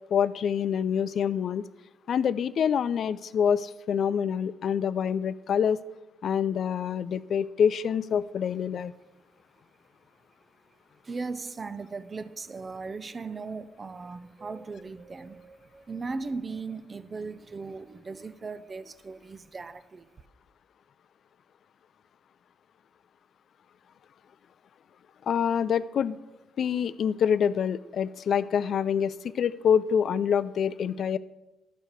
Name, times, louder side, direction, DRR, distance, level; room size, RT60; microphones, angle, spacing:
voice 1, 0.1-1.6 2.1-5.8 6.2-8.9 25.3-26.2 26.6-31.2, left 8 dB, 60° left, 0.3 m, -26 dB
voice 2, 11.0-20.1, right 4 dB, 30° right, 0.5 m, -38 dB
12.0 x 4.6 x 5.0 m
cardioid pair, 90°, 0 cm